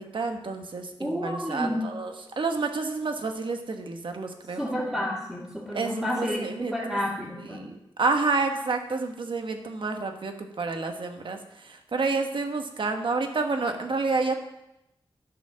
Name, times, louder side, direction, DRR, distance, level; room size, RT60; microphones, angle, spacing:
voice 1, 0.0-4.6 5.7-7.0 7.4-14.3, right 3 dB, 60° right, 5 dB, 1.2 m, -29 dB
voice 2, 1.0-1.8 4.6-6.4 6.7-7.6, equal, ahead, -9 dB, 2.4 m, -30 dB
12.5 x 5.1 x 6.3 m, 0.87 s
wide cardioid pair, 115°, 9 cm